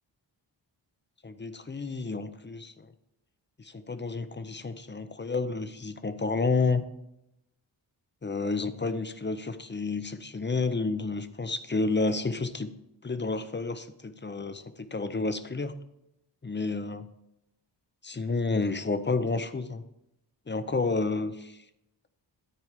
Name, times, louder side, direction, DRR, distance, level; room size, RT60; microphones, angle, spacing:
voice 1, 1.2-2.9 3.6-6.8 8.2-12.7 13.0-15.7 16.4-17.1 18.0-19.8 20.5-21.6, left 3 dB, 25° left, 11 dB, 0.6 m, -30 dB
13.0 x 4.5 x 4.6 m, 0.85 s
wide cardioid pair, 80°, 45 cm